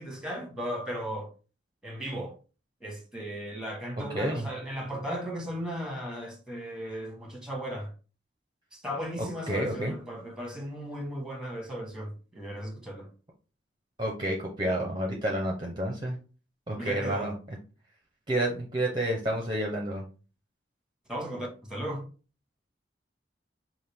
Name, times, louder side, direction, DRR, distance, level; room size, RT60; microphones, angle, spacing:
voice 1, 0.0-1.3 1.8-2.4 2.8-7.9 8.7-13.1 16.8-17.3 21.1-22.0, equal, 5° right, 1.2 m, -36 dB
voice 2, 4.1-4.5 9.2-9.9 14.0-16.2 16.7-17.6 18.3-20.0, right 1 dB, 25° right, 0.7 m, -30 dB
5.6 x 2.5 x 3.4 m
head